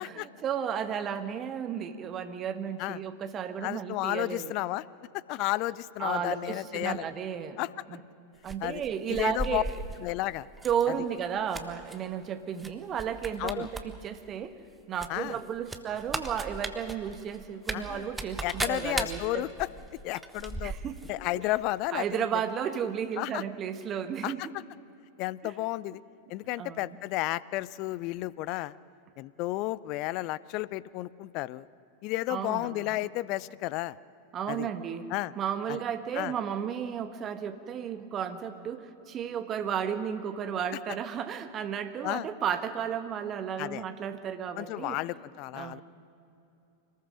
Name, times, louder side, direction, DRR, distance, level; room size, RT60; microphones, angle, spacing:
voice 1, 0.0-4.5 6.0-7.6 7.9-8.0 8.4-9.8 10.6-14.5 14.9-19.4 20.6-21.0 21.4-21.5 21.9-24.4 25.4-25.5 26.6-26.8 32.3-32.9 34.3-35.1 35.4-45.0 45.5-45.8, right 8 dB, 30° right, 9 dB, 1.3 m, -33 dB
voice 2, 3.6-4.8 5.3-7.1 7.6-7.7 8.6-8.8 9.1-9.6 10.0-10.5 13.4-13.7 15.1-15.4 17.7-18.1 18.4-19.7 20.0-20.7 21.1-22.2 23.2-23.4 24.2-24.5 25.2-26.0 26.3-28.7 29.2-31.7 32.0-34.0 34.5-34.7 35.1-35.3 35.7-35.8 36.1-36.3 42.0-42.3 43.6-43.8 44.6-45.8, left 18 dB, 40° left, 20 dB, 0.5 m, -32 dB
sound 1, 8.4-10.0 10.6-10.8 11.2-12.0 12.6-12.7 13.0-13.8 14.1-14.2 15.0-21.1 21.4-21.5, right 3 dB, 10° right, 1.3 m, -37 dB
25.5 x 19.5 x 6.4 m, 2.8 s
figure-of-eight pair, 90°, 0 cm